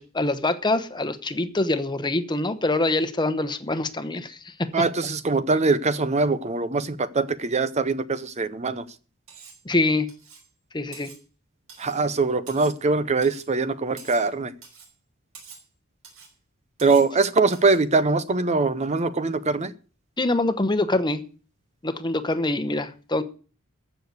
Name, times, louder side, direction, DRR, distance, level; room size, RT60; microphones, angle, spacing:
voice 1, 0.0-4.7 9.6-10.1 10.7-11.1 20.2-21.2 21.8-23.2, left 2 dB, 20° left, 1.0 m, -25 dB
voice 2, 4.7-8.9 11.8-14.5 16.8-19.7, right 3 dB, 30° right, 0.6 m, -22 dB
Cutlery silverware, 9.3-9.6 10.1-10.5 10.9-11.2 11.7-12.0 12.5-12.8 13.2-13.5 14.0-14.3 14.6-14.9 15.3-15.7 16.0-16.3 16.8-17.1 17.5-17.8, right 6 dB, 70° right, 5.2 m, -46 dB
15.0 x 6.8 x 8.2 m
head